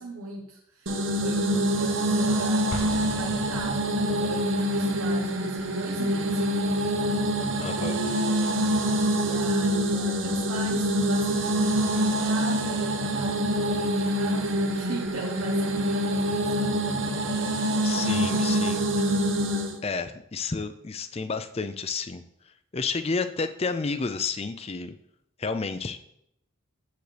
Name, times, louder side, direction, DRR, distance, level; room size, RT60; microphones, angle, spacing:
voice 1, 0.0-2.8 3.1-7.5 7.8-8.9 9.2-16.8, right 2 dB, 85° right, -1 dB, 1.0 m, -38 dB
sound 1, 0.9-19.8, equal, 60° right, 0.9 m, -25 dB
Explosion, 2.7-4.5, left 3 dB, 80° left, 0.8 m, -37 dB
voice 2, 7.6-7.9 17.8-19.2 19.8-22.2 22.7-24.9 25.4-26.0, left 4 dB, 30° left, 10 dB, 0.4 m, -31 dB
9.4 x 7.6 x 3.3 m, 0.78 s
head